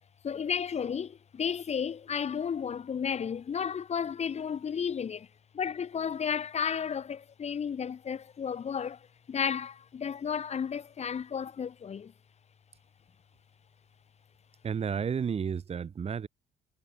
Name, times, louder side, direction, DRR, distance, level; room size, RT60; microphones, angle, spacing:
voice 1, 0.2-5.3 5.5-12.1, left 7 dB, 40° left, 5.5 m, -33 dB
voice 2, 14.6-16.3, right 7 dB, 35° right, 3.3 m, -32 dB
cardioid pair, 110°, 17 cm